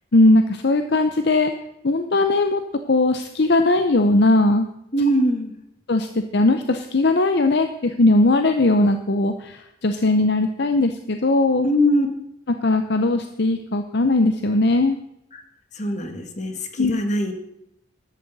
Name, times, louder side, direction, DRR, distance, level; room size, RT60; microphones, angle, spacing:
voice 1, 0.1-1.5 1.8-2.6 2.9-4.7 5.9-6.1 6.3-11.7 12.6-15.0 16.8-16.9, left 2 dB, 55° left, 7 dB, 0.7 m, -19 dB
voice 2, 4.9-5.5 11.6-12.1 15.3-15.4 15.7-17.5, equal, 35° left, 5 dB, 1.6 m, -22 dB
14.0 x 11.5 x 4.1 m, 0.81 s
head